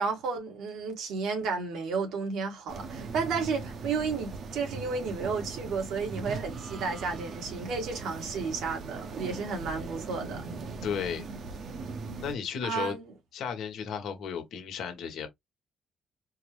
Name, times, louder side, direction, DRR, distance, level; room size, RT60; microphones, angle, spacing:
voice 1, 0.0-10.4 12.6-13.1, right 4 dB, 85° right, 1.3 m, -32 dB
sound 1, 2.7-12.3, right 4 dB, 60° right, 0.7 m, -39 dB
voice 2, 10.8-11.3 12.2-12.9 13.3-15.3, left 7 dB, 80° left, 1.1 m, -34 dB
4.5 x 2.1 x 3.0 m
cardioid pair, 90°, 0 cm